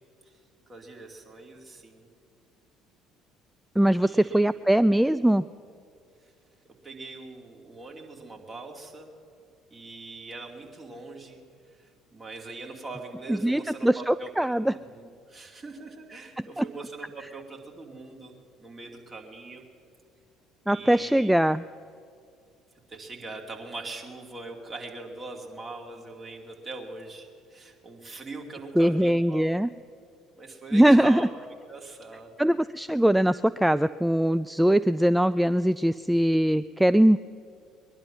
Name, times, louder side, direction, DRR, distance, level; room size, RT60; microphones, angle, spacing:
voice 1, 0.7-2.1 4.0-4.4 6.8-9.1 9.7-11.4 11.7-18.3 18.6-19.6 20.7-21.4 22.9-29.5 30.4-31.3 31.7-32.3, right 3 dB, 30° right, 1 dB, 2.6 m, -42 dB
voice 2, 3.8-5.4 13.3-14.7 16.6-16.7 20.7-21.6 28.8-29.7 30.7-31.2 32.4-37.2, right 1 dB, 5° right, 13 dB, 0.3 m, -21 dB
21.5 x 11.0 x 6.0 m, 2.4 s
figure-of-eight pair, 55°, 0 cm